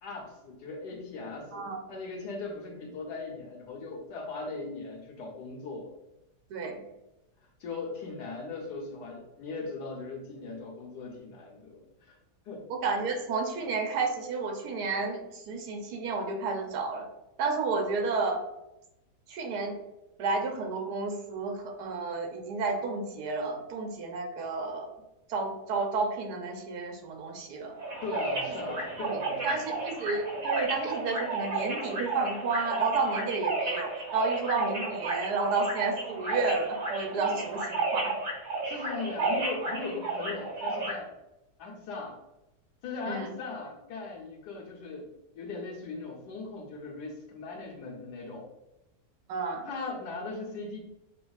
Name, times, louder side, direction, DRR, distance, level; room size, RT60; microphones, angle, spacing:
voice 1, 0.0-5.9 7.6-12.2 12.5-12.6 28.0-29.8 37.1-37.3 38.6-41.1 41.6-42.2 42.8-48.5 49.6-50.8, left 3 dB, 75° left, 0 dB, 1.4 m, -39 dB
voice 2, 6.5-6.8 12.7-17.1 17.4-18.4 19.3-19.8 20.2-24.9 25.3-27.8 29.0-29.2 29.4-38.1 43.1-43.3 49.3-49.7, right 4 dB, 75° right, 3 dB, 1.3 m, -31 dB
sound 1, 27.8-40.9, right 3 dB, 55° right, 1.8 m, -33 dB
6.1 x 2.5 x 2.3 m, 0.93 s
omnidirectional pair, 1.8 m